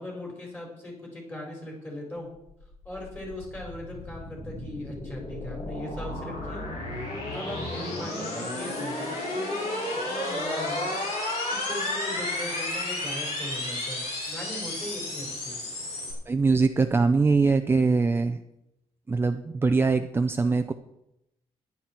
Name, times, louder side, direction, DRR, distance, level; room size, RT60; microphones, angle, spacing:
voice 1, 0.0-2.3 2.8-6.6 7.3-9.8 10.1-11.4 11.7-15.6, left 1 dB, 15° left, -1 dB, 4.6 m, -39 dB
sound 1, 2.5-16.1, left 2 dB, 65° left, 4.9 m, -32 dB
voice 2, 16.3-18.4 19.1-20.7, right 4 dB, 20° right, 8 dB, 0.5 m, -22 dB
14.0 x 11.0 x 4.4 m, 0.85 s
cardioid pair, 145°, 12 cm